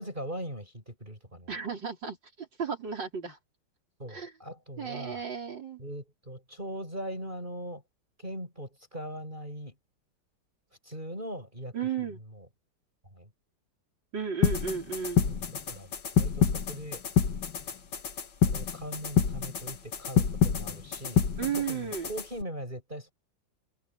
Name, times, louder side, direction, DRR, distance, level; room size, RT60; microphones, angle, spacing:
voice 1, 0.0-1.5 4.0-5.2 5.8-7.8 8.2-9.8 10.8-11.7 12.1-12.5 13.1-13.3 15.2-17.0 18.4-21.3 21.6-23.1, equal, 20° right, 8.1 m, -40 dB
voice 2, 1.5-3.4 4.1-4.3 4.8-5.8 11.7-12.2 14.1-15.3 21.4-22.1, right 7 dB, 60° right, 4.7 m, -34 dB
sound 1, 14.4-22.4, left 7 dB, 60° left, 2.3 m, -27 dB
omnidirectional pair, 2.3 m